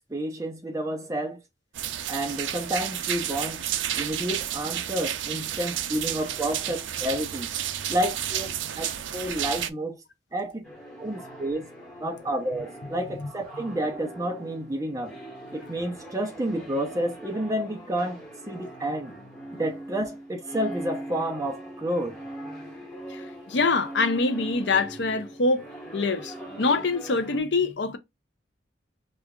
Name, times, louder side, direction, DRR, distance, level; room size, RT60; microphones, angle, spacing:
voice 1, 0.1-1.4 2.1-3.6 4.0-7.5 7.9-10.0 10.3-10.7 11.0-11.7 12.0-15.2 15.5-18.2 18.5-19.1 19.5-22.2, right 1 dB, 20° right, 0.6 m, -30 dB
sound 1, 1.8-9.7, right 10 dB, 85° right, 0.4 m, -31 dB
sound 2, 10.6-27.4, right 1 dB, 5° left, 1.3 m, -41 dB
voice 2, 23.1-25.6 25.9-28.0, left 3 dB, 70° left, 0.7 m, -25 dB
5.0 x 2.4 x 2.4 m
head